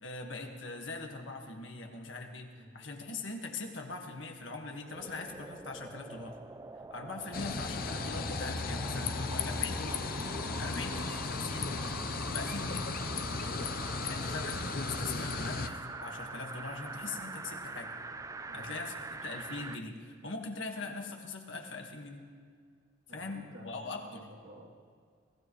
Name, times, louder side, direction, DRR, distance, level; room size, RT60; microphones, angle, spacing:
voice 1, 0.0-6.3 6.9-10.0 10.6-11.7 12.3-12.9 14.0-17.9 18.5-18.9 19.2-22.3 23.1-24.2, left 3 dB, 70° left, 3 dB, 1.7 m, -41 dB
sound 1, 4.9-19.8 20.3-20.4, right 3 dB, 15° right, 0.4 m, -44 dB
sound 2, 7.3-15.7, left 4 dB, 50° left, 0.7 m, -35 dB
voice 2, 18.5-19.0 23.1-24.7, equal, 85° right, -2 dB, 2.8 m, -52 dB
22.0 x 15.5 x 3.2 m, 2.1 s
head